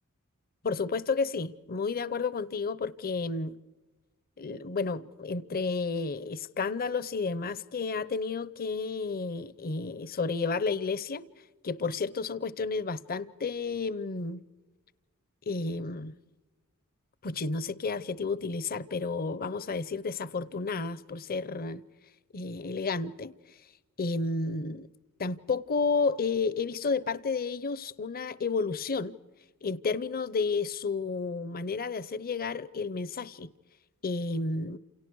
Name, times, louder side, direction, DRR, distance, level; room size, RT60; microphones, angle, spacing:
voice 1, 0.6-3.5 4.4-11.2 11.6-14.4 15.5-16.1 17.2-21.8 22.3-23.3 24.0-24.9 25.2-29.2 29.6-33.5 34.0-34.8, left 4 dB, 45° left, 0.7 m, -31 dB
29.0 x 28.5 x 4.7 m
head